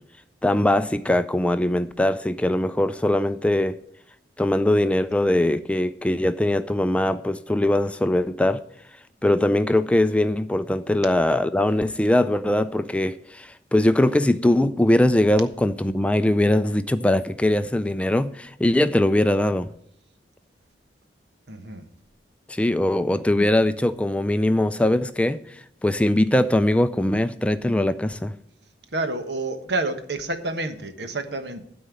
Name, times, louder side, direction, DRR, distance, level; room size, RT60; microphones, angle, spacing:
voice 1, 0.4-3.8 4.4-8.6 9.2-19.7 22.5-28.4, left 1 dB, 5° left, 0.4 m, -21 dB
voice 2, 21.5-21.9 22.9-23.0 28.9-31.6, right 2 dB, 70° right, 1.3 m, -29 dB
12.5 x 4.4 x 8.3 m
head